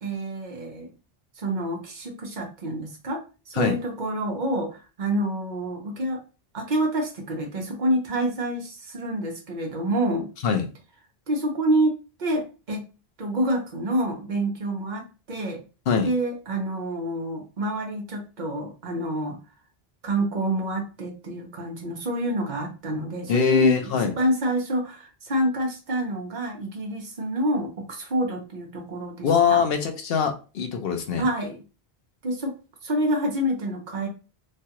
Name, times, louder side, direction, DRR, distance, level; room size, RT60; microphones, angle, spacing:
voice 1, 0.0-0.9 1.4-6.2 6.5-10.3 11.3-12.8 13.2-15.6 16.0-19.4 20.0-29.6 31.2-31.6 32.2-32.6 32.8-34.1, right 1 dB, 50° right, 2 dB, 0.9 m, -27 dB
voice 2, 23.3-24.1 29.2-31.2, left 6 dB, 70° left, 5 dB, 0.8 m, -22 dB
3.1 x 2.3 x 2.8 m, 0.32 s
omnidirectional pair, 1.1 m